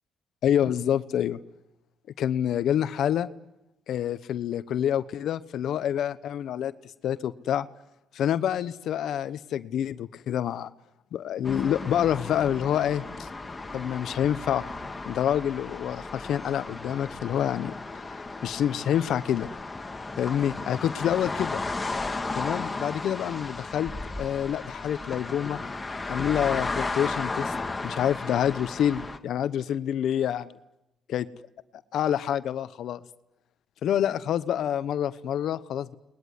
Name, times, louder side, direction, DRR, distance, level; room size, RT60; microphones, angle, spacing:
voice 1, 0.4-1.4 2.2-3.3 3.9-6.7 7.0-7.7 8.1-10.7 11.1-13.3 13.7-14.6 15.1-19.5 20.2-21.6 22.3-25.6 26.1-27.5 27.8-30.6 31.1-31.3 31.9-33.0 33.8-35.9, left 10 dB, 75° left, 14 dB, 0.9 m, -27 dB
sound 1, 11.4-29.2, left 3 dB, 20° left, 1.8 m, -35 dB
29.5 x 20.5 x 9.6 m, 0.94 s
cardioid pair, 90°, 0 cm